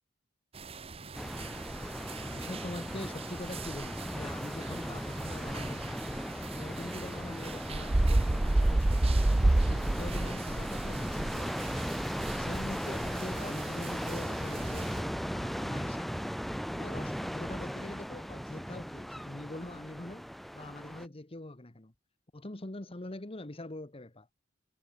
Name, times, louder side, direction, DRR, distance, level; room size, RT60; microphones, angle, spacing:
sound 1, 0.6-15.0, right 2 dB, 30° right, 0.8 m, -32 dB
sound 2, 1.1-21.1, equal, ahead, 1.9 m, -37 dB
voice 1, 2.3-6.1 6.5-9.1 9.4-11.8 12.3-16.3 16.7-20.3 20.5-21.9 22.3-24.3, left 1 dB, 30° left, 1.2 m, -43 dB
head